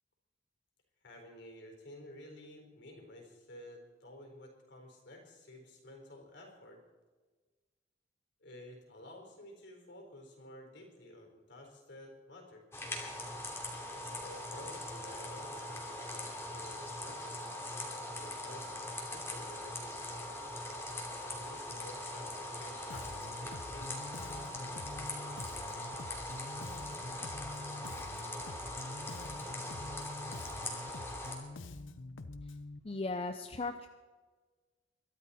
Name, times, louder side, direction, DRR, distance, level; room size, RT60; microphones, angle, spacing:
voice 1, 1.0-6.8 8.4-12.6 13.9-17.3 18.2-18.7 19.0-19.9 21.0-24.1, left 1 dB, 65° left, 2 dB, 4.0 m, -52 dB
sound 1, 12.7-31.3, left 1 dB, 15° left, 2.8 m, -41 dB
Bass guitar, 22.9-32.8, left 2 dB, 85° left, 0.8 m, -46 dB
voice 2, 32.8-33.9, left 3 dB, 30° left, 7 dB, 0.6 m, -37 dB
22.5 x 12.5 x 4.3 m, 1.3 s
head